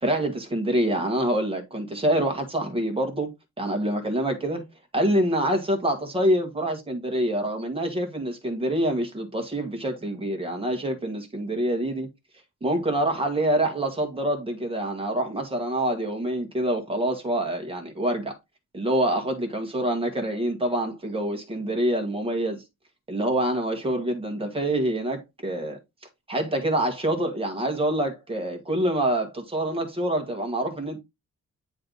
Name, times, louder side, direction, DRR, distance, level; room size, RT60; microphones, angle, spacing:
voice 1, 0.0-3.3 3.6-4.6 4.9-12.1 12.6-18.4 18.7-22.6 23.1-25.8 26.3-31.0, right 1 dB, 15° right, 1.5 m, -26 dB
9.6 x 3.3 x 3.9 m
wide cardioid pair, 175°, 31 cm